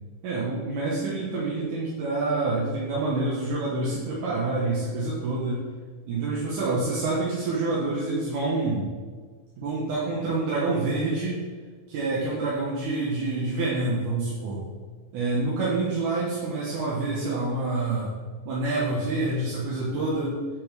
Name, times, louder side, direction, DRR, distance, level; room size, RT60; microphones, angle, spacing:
voice 1, 0.2-5.6 6.1-8.9 9.6-11.3 11.9-14.6 15.1-18.1 18.5-20.4, right 2 dB, 85° right, -6 dB, 2.8 m, -27 dB
7.6 x 3.9 x 6.5 m, 1.5 s
omnidirectional pair, 3.5 m